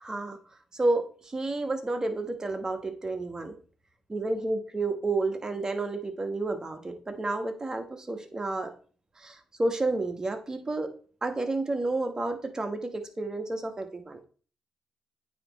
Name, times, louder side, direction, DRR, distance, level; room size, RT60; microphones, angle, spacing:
voice 1, 0.0-0.4 0.7-3.6 4.1-8.7 9.2-10.9 11.2-14.2, right 2 dB, 30° right, 6 dB, 1.3 m, -30 dB
8.7 x 3.1 x 4.1 m, 0.41 s
supercardioid pair, 50°, 2 cm